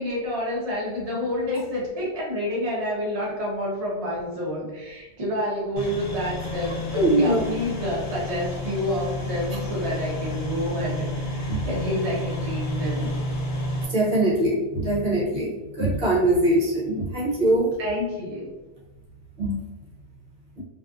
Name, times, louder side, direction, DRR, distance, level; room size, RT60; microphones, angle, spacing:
voice 1, 0.0-13.1 17.8-18.5, left 1 dB, 35° right, -5 dB, 0.8 m, -29 dB
sound 1, 5.8-13.8, left 1 dB, 55° left, 0.8 m, -31 dB
voice 2, 6.9-7.4 11.5-11.7 13.9-17.7 19.4-19.5, right 1 dB, 60° right, -7 dB, 0.9 m, -22 dB
2.4 x 2.4 x 2.4 m, 1.1 s
omnidirectional pair, 1.2 m